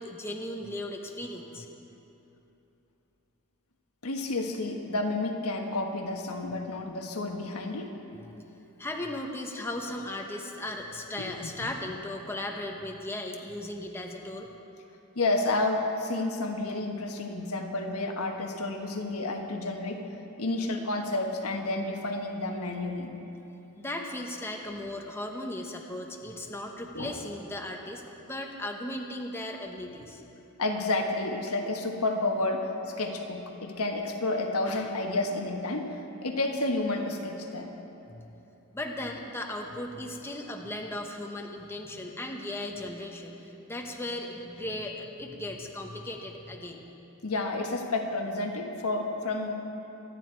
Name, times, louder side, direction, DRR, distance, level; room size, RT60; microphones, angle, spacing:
voice 1, 0.0-1.7 8.2-8.3 8.8-14.5 23.8-30.2 38.1-38.3 38.7-46.8, left 1 dB, 10° left, 1 dB, 1.0 m, -37 dB
voice 2, 4.0-7.9 11.2-11.5 15.1-20.0 20.4-23.2 26.9-27.2 30.6-32.7 33.0-35.9 36.2-37.7 47.2-49.5, left 2 dB, 75° left, 2 dB, 1.4 m, -30 dB
25.0 x 9.6 x 4.6 m, 3.0 s
head